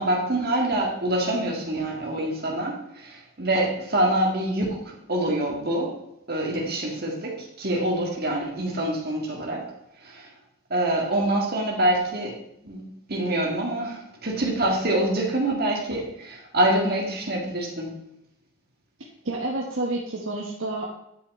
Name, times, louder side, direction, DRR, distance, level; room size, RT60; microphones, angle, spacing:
voice 1, 0.0-5.9 6.3-9.6 10.0-10.3 10.7-12.3 12.6-12.8 13.1-18.0, right 1 dB, 45° right, -1 dB, 2.1 m, -25 dB
voice 2, 19.2-20.9, right 2 dB, 70° right, -1 dB, 1.2 m, -29 dB
10.0 x 5.5 x 4.4 m, 0.80 s
head